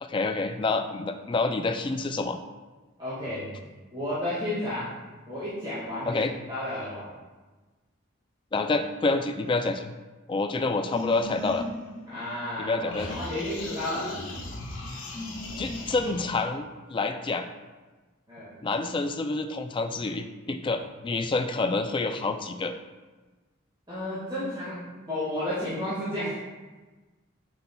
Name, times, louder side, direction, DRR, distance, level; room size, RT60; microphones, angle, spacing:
voice 1, 0.0-2.4 6.0-6.3 8.5-9.9 10.3-11.6 12.6-13.2 15.6-17.5 18.6-22.7, left 3 dB, 25° left, 7 dB, 0.3 m, -28 dB
voice 2, 3.0-3.6 3.9-4.9 5.3-7.1 12.0-14.2 18.3-18.5 23.9-24.8 25.1-26.4, left 1 dB, 20° right, -11 dB, 1.8 m, -32 dB
sound 1, 10.9-12.6 12.9-16.4, left 2 dB, 65° left, 0.8 m, -37 dB
7.9 x 5.4 x 2.3 m, 1.3 s
head